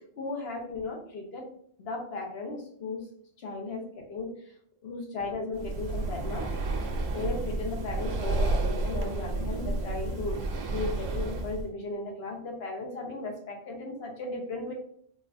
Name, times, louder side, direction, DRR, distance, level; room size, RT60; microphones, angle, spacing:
voice 1, 0.0-1.5 1.8-3.0 3.4-4.3 4.8-6.5 7.1-10.4 10.7-14.7, left 3 dB, 75° left, 1 dB, 1.1 m, -36 dB
Breathing, 5.5-11.7, right 2 dB, 85° right, 0.9 m, -31 dB
4.0 x 2.4 x 2.5 m, 0.64 s
omnidirectional pair, 1.1 m